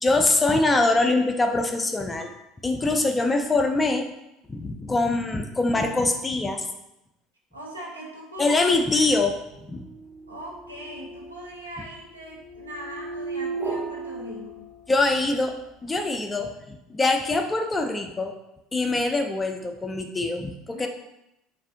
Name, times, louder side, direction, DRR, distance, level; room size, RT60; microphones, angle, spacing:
voice 1, 0.0-2.3 2.6-4.1 4.5-6.7 8.4-9.9 14.9-18.3 18.7-20.9, left 2 dB, 15° left, 5 dB, 0.3 m, -24 dB
voice 2, 7.5-8.7 10.3-14.7 20.7-20.9, right 1 dB, 80° right, -2 dB, 0.6 m, -40 dB
sound 1, 8.7-15.2, right 3 dB, 30° right, 0.7 m, -36 dB
2.5 x 2.4 x 3.5 m, 0.88 s
figure-of-eight pair, 65°, 0 cm